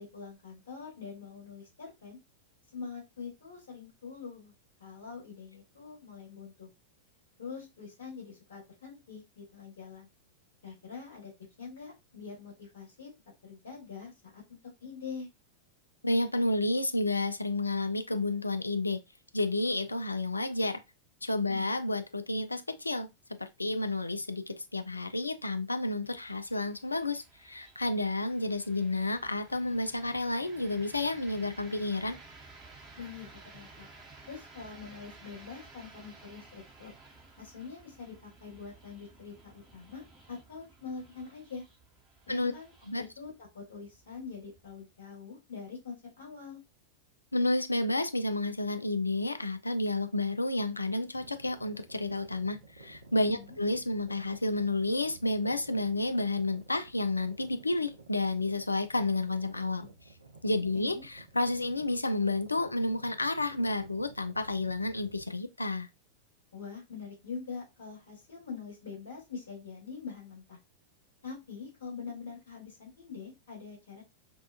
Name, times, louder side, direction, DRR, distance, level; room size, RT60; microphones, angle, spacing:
voice 1, 0.0-2.2 2.7-4.5 4.8-6.7 7.4-10.1 10.6-11.3 11.6-13.1 13.4-15.3 21.5-21.8 33.0-33.9 34.3-36.9 37.4-41.6 42.3-46.6 53.2-53.5 60.7-61.0 66.5-70.6 71.2-74.0, left 5 dB, 65° left, 1.2 m, -44 dB
voice 2, 16.0-19.0 19.3-20.8 21.2-23.1 23.4-32.2 42.3-42.5 42.9-43.0 47.3-59.9 60.4-65.9, left 2 dB, 80° left, 0.3 m, -31 dB
sound 1, 26.0-45.0, right 3 dB, 15° right, 0.8 m, -55 dB
sound 2, 51.1-65.2, right 3 dB, 75° right, 0.5 m, -54 dB
2.6 x 2.2 x 2.3 m
figure-of-eight pair, 90°, 0 cm